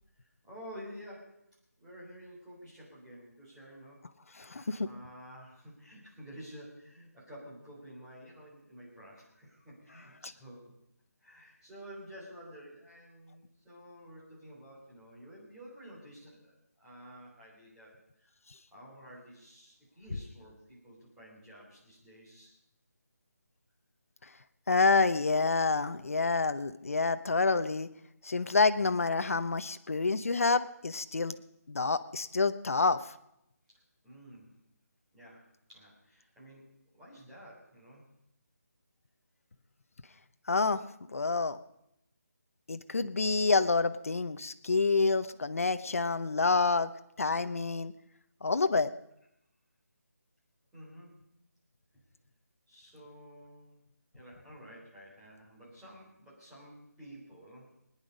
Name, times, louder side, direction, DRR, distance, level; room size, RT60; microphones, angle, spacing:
voice 1, 0.4-1.4 1.8-10.7 11.2-16.5 16.8-17.9 18.2-18.3 18.7-22.5 34.0-34.5 35.1-36.7 37.0-38.0 50.7-51.2 52.7-53.8 54.1-57.7, equal, 5° right, -10 dB, 3.5 m, -51 dB
voice 2, 4.4-4.9 10.2-10.3 24.7-27.9 28.2-31.3 31.7-33.0 40.5-40.8 41.1-41.6 42.7-46.9 47.2-47.9 48.4-48.9, left 4 dB, 55° left, 10 dB, 0.8 m, -28 dB
21.0 x 10.0 x 5.2 m, 0.79 s
figure-of-eight pair, 180°, 9 cm